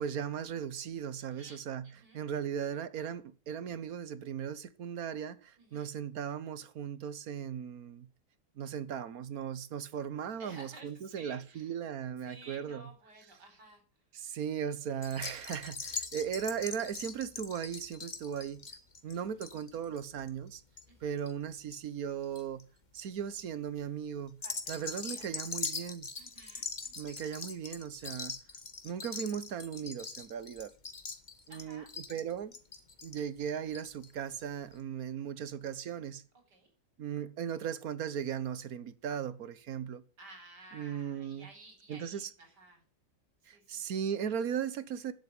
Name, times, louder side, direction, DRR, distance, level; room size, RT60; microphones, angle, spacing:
voice 1, 0.0-8.1 8.6-12.8 14.1-18.7 19.0-20.6 21.0-22.7 22.9-24.4 24.7-26.1 27.0-28.3 28.8-30.7 31.5-32.5 33.0-36.2 37.0-40.0 40.7-41.5 41.9-42.3 43.5-45.1, right 8 dB, 60° right, 1.4 m, -37 dB
voice 2, 1.2-2.2 5.6-5.9 10.4-11.7 12.2-13.8 19.1-19.5 20.9-21.1 24.4-25.2 26.2-27.1 31.5-31.9 36.5-36.7 40.2-42.8 43.4-44.0, right 2 dB, 80° right, 5.2 m, -54 dB
sound 1, 15.0-21.8 22.1-22.6 23.1-23.4 24.3-34.1 34.4-34.5 34.7-34.8, left 4 dB, 30° left, 1.3 m, -42 dB
11.0 x 8.0 x 9.6 m
omnidirectional pair, 1.8 m